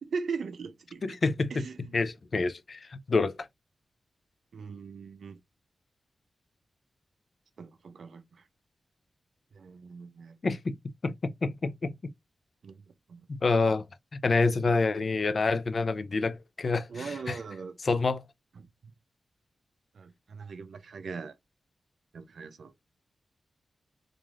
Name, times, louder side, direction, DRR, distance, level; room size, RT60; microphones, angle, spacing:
voice 1, 0.0-1.2 1.5-2.0 4.5-5.4 7.6-8.2 9.5-10.4 12.6-12.8 13.1-13.3 16.9-17.8 18.6-18.7 19.9-21.3 22.1-22.7, right 5 dB, 80° right, 0.4 m, -39 dB
voice 2, 1.0-1.7 1.9-3.5 10.4-10.8 11.0-12.1 13.3-13.9 14.1-17.4 17.8-18.2, left 3 dB, 55° left, 0.4 m, -28 dB
3.1 x 2.5 x 2.3 m
cardioid pair, 70°, 0 cm